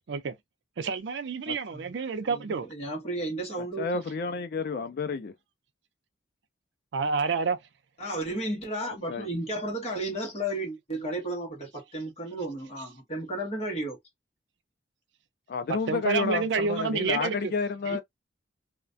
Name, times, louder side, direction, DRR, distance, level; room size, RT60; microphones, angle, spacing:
voice 1, 0.8-2.7 6.9-7.6 15.9-17.5 17.9-18.0, right 5 dB, 70° right, 0.4 m, -28 dB
voice 2, 2.3-3.9 8.0-14.0, right 1 dB, 35° left, 1.0 m, -33 dB
voice 3, 3.8-5.3 9.1-9.3 15.5-18.0, left 4 dB, 55° left, 0.4 m, -30 dB
2.4 x 2.2 x 2.5 m
head